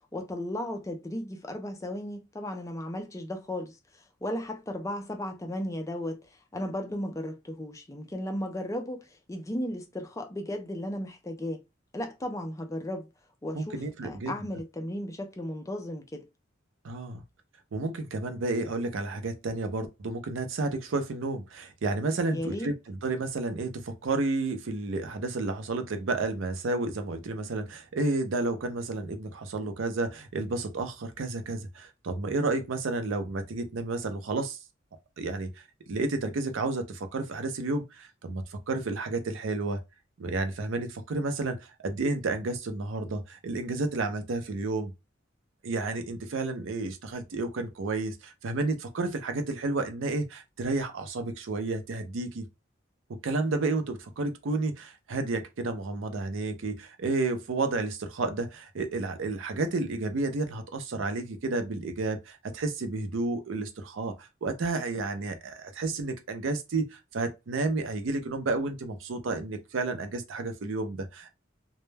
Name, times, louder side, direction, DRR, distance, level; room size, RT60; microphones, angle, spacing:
voice 1, 0.1-11.6 11.9-13.1 13.4-16.3 22.3-22.7, left 1 dB, 15° left, 0.4 m, -35 dB
voice 2, 13.5-14.3 16.8-17.2 17.7-34.6 35.2-35.5 35.9-39.8 40.2-44.9 45.6-52.5 53.2-71.3, right 3 dB, 80° right, 0.5 m, -31 dB
2.1 x 2.1 x 3.2 m
head